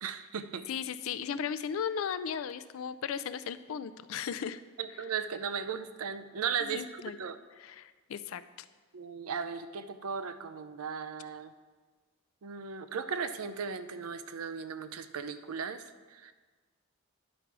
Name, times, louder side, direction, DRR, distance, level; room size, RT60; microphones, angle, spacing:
voice 1, 0.0-0.6 4.8-7.4 8.9-11.5 12.4-15.8 16.1-16.3, right 6 dB, 80° right, 11 dB, 0.5 m, -37 dB
voice 2, 0.7-4.6 6.6-7.2 7.6-8.4, left 7 dB, 70° left, 13 dB, 0.4 m, -36 dB
10.0 x 6.1 x 4.7 m, 1.4 s
head